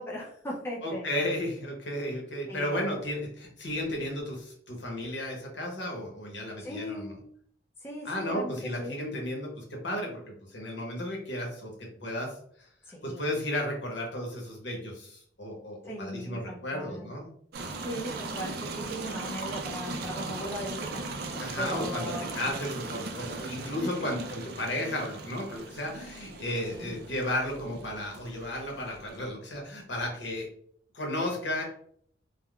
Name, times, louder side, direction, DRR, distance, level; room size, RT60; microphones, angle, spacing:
voice 1, 0.0-1.1 2.5-2.9 6.6-7.3 7.8-9.0 12.8-13.3 15.8-17.1 17.8-21.0 21.6-22.3 23.8-24.3 26.7-27.0, equal, 15° left, -4 dB, 0.4 m, -38 dB
voice 2, 0.8-7.1 8.0-12.4 13.0-17.3 21.4-30.5 30.9-31.6, left 1 dB, 70° left, 0 dB, 0.9 m, -34 dB
sound 1, 17.5-29.3, right 3 dB, 55° right, 0.4 m, -39 dB
3.5 x 2.1 x 2.3 m, 0.63 s
head